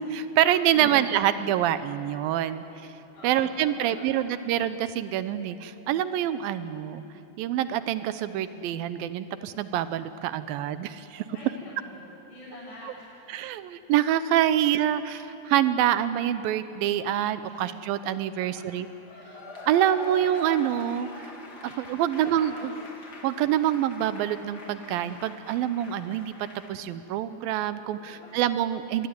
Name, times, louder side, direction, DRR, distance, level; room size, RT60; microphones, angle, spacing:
voice 1, 0.0-2.6 3.2-7.0 7.4-11.2 12.8-12.9 13.3-18.9 19.7-21.3 21.6-22.5 23.2-26.3 26.7-29.1, right 11 dB, 80° right, 13 dB, 2.2 m, -26 dB
voice 2, 0.7-1.0 3.1-3.5 3.8-3.9 4.4-4.5 11.3-13.1 17.5-17.6 18.4-18.5 19.2-19.4 22.1-22.7 27.8-28.4, left 2 dB, 85° left, -10 dB, 8.0 m, -45 dB
Cheering / Applause / Crowd, 19.1-26.7, left 1 dB, 30° left, 2.4 m, -43 dB
25.0 x 21.5 x 9.6 m, 3.0 s
omnidirectional pair, 4.9 m